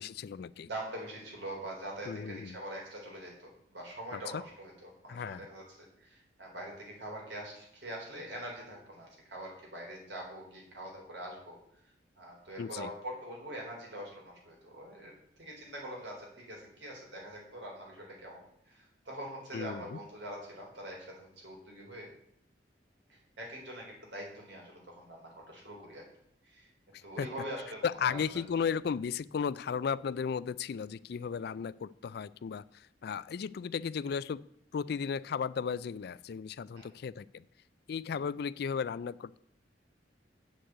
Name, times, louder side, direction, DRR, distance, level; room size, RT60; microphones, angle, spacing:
voice 1, 0.0-0.7 2.1-2.6 4.1-4.4 5.1-5.5 12.6-12.9 19.5-20.0 26.9-27.3 27.8-34.4 34.7-37.5 37.9-39.4, left 6 dB, 60° left, 19 dB, 0.3 m, -35 dB
voice 2, 0.6-11.6 12.2-18.4 18.7-22.1 23.1-26.1 26.4-26.7 27.0-28.2 36.7-36.9, right 1 dB, 70° right, -1 dB, 4.1 m, -44 dB
8.1 x 6.5 x 7.9 m, 0.71 s
head